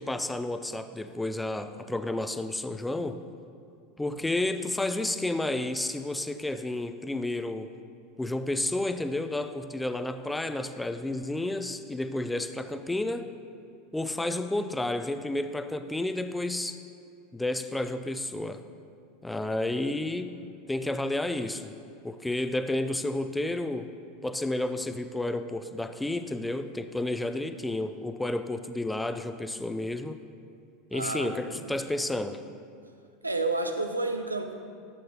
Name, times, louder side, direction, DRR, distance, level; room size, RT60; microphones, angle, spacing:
voice 1, 0.0-3.2 4.0-7.7 8.2-13.3 13.9-16.8 17.3-18.6 19.2-20.4 20.7-21.7 22.0-23.9 24.2-30.2 30.9-32.4, left 2 dB, 5° left, 10 dB, 0.4 m, -31 dB
voice 2, 30.9-31.8 33.2-34.5, right 2 dB, 85° right, 6 dB, 0.5 m, -31 dB
12.0 x 7.6 x 2.9 m, 2.4 s
figure-of-eight pair, 80°, 0 cm